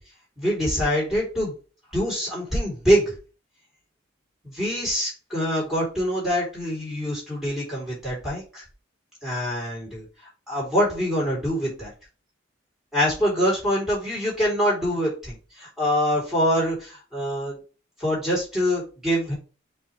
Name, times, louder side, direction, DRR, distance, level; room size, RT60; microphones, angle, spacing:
voice 1, 0.4-1.5 1.9-3.1 4.4-8.6 9.2-10.0 10.5-11.9 12.9-17.6 18.0-19.3, equal, ahead, -7 dB, 3.7 m, -24 dB
7.9 x 3.6 x 3.3 m, 0.35 s
head